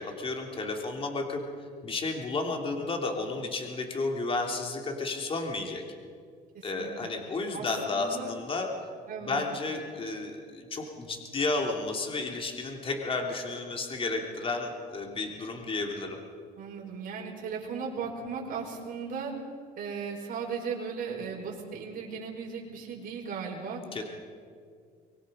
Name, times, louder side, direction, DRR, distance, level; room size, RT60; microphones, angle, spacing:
voice 1, 0.0-1.4 1.8-5.8 6.6-8.7 9.2-16.2 23.9-24.0, left 3 dB, 30° left, 2 dB, 3.0 m, -32 dB
voice 2, 6.5-7.1 7.5-8.3 9.1-9.5 16.6-19.3 19.8-23.8, right 6 dB, 55° right, -1 dB, 5.6 m, -37 dB
24.0 x 22.5 x 5.5 m, 2.2 s
cardioid pair, 110°, 17 cm